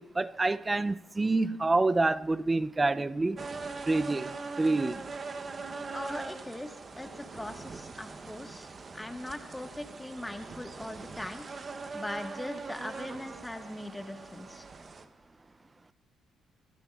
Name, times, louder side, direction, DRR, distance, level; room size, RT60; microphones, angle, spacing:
voice 1, 0.0-3.4 3.9-4.3 4.6-5.0, right 2 dB, 20° right, 0.4 m, -27 dB
sound 1, 3.4-15.1, right 4 dB, 40° right, 0.7 m, -42 dB
voice 2, 5.9-11.4 11.9-14.7, left 1 dB, 10° left, 1.3 m, -40 dB
21.5 x 12.0 x 2.3 m
cardioid pair, 90°, 0 cm